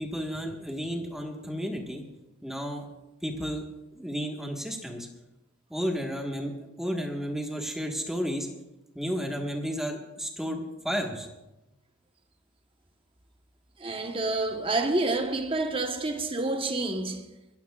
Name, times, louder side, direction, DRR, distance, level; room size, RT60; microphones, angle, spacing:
voice 1, 0.0-2.0 2.4-2.8 3.2-3.6 3.9-5.1 5.7-8.5 8.9-11.3, equal, ahead, 1.5 m, -32 dB
voice 2, 13.8-17.3, right 2 dB, 25° right, 1.1 m, -28 dB
24.5 x 15.0 x 2.4 m
head